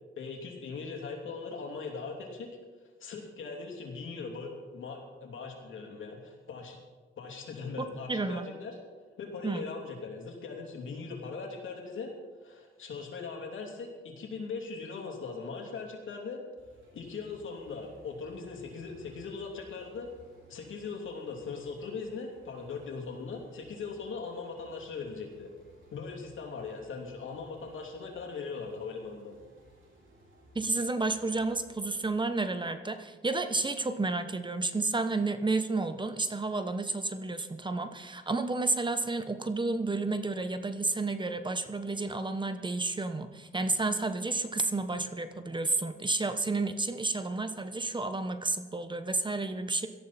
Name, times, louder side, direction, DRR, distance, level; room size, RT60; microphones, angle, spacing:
voice 1, 0.2-2.5 3.0-6.8 7.2-8.7 9.2-12.1 12.4-16.4 16.9-20.1 20.5-25.5 25.9-29.3, left 4 dB, 85° left, 0 dB, 3.0 m, -40 dB
voice 2, 7.8-8.5 9.4-9.7 30.5-49.9, right 3 dB, 25° right, 9 dB, 1.1 m, -31 dB
sound 1, 16.6-32.6, right 1 dB, 80° right, 4.5 m, -59 dB
18.0 x 13.0 x 4.3 m, 1.4 s
cardioid pair, 80°, 20 cm